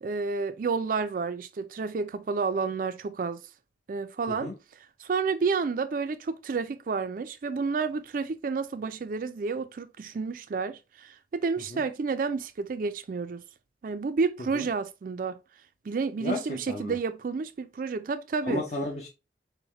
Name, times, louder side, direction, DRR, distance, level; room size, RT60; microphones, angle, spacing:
voice 1, 0.0-3.4 3.9-4.5 5.0-13.4 13.8-15.4 15.9-18.6, right 4 dB, 50° right, 0.4 m, -30 dB
voice 2, 18.5-19.1, left 2 dB, 40° left, 0.8 m, -32 dB
5.4 x 2.1 x 4.2 m
head